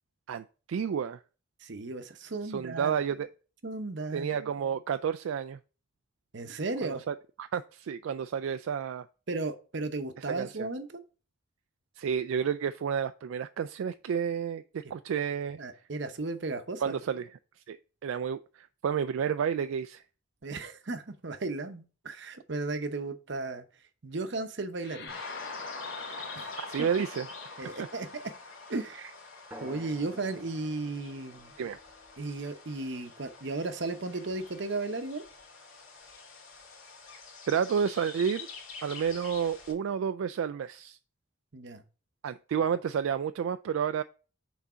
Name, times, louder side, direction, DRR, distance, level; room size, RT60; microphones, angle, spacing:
voice 1, 0.3-1.2 2.5-3.3 4.1-5.6 6.8-9.1 10.3-10.7 12.0-15.6 16.8-17.3 17.7-20.0 26.2-26.3 26.6-27.3 31.6-31.8 37.5-38.5 38.8-41.0 42.2-44.0, right 7 dB, 75° right, 0.3 m, -31 dB
voice 2, 1.6-2.9 3.6-4.3 6.3-7.0 9.3-11.0 15.6-16.9 20.4-23.7 24.0-25.2 26.4-26.9 27.6-28.2 28.7-29.1 29.6-31.5 32.2-35.2 41.5-41.8, right 3 dB, 55° right, 0.8 m, -35 dB
sound 1, 24.8-29.6, left 3 dB, 50° left, 1.0 m, -47 dB
sound 2, 25.1-39.7, left 4 dB, 80° left, 2.1 m, -46 dB
sound 3, 29.5-34.5, right 1 dB, 10° right, 1.1 m, -53 dB
6.1 x 4.0 x 5.5 m
head